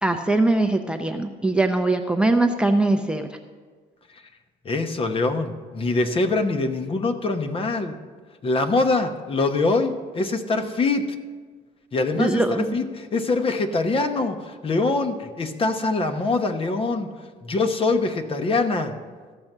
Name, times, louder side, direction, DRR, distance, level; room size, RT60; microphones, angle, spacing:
voice 1, 0.0-3.3 12.2-12.8, right 2 dB, 5° right, 6 dB, 0.6 m, -21 dB
voice 2, 4.6-7.9 8.4-11.2 11.9-17.1 17.4-19.0, left 3 dB, 35° left, 7 dB, 0.9 m, -24 dB
14.0 x 5.9 x 6.6 m, 1.5 s
cardioid pair, 110°, 17 cm